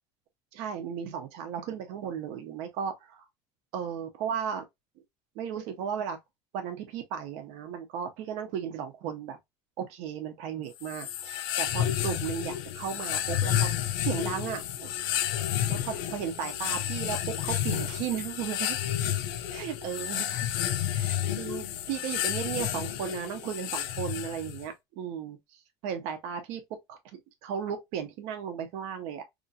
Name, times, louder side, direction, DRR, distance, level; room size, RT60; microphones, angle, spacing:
voice 1, 0.5-3.2 3.7-4.7 5.3-6.2 6.5-9.4 9.8-13.7 14.0-14.9 15.7-18.8 19.5-20.5 20.9-25.4 25.8-26.6 26.9-29.2, right 8 dB, 70° right, 0.7 m, -35 dB
sound 1, 10.8-24.7, left 11 dB, 90° left, 0.4 m, -31 dB
2.9 x 2.5 x 2.6 m
cardioid pair, 145°, 11 cm